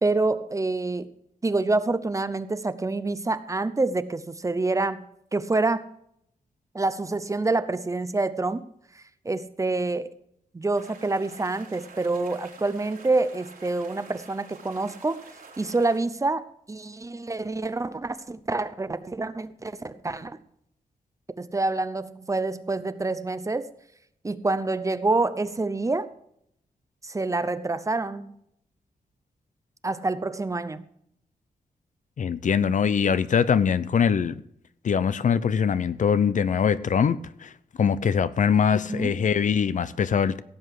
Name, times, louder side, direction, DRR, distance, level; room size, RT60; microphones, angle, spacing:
voice 1, 0.0-1.1 1.4-5.0 5.3-5.9 6.7-8.6 8.9-10.1 10.5-15.2 15.6-20.4 21.4-23.7 24.2-26.1 27.0-28.3 29.8-30.8 38.7-39.2, right 3 dB, 20° right, 0.7 m, -27 dB
sound 1, 10.7-16.0, right 4 dB, 85° right, 4.1 m, -48 dB
voice 2, 32.2-34.4 34.8-37.5 37.8-40.4, left 7 dB, 60° left, 0.6 m, -23 dB
16.5 x 8.0 x 4.8 m
wide cardioid pair, 130°, 15 cm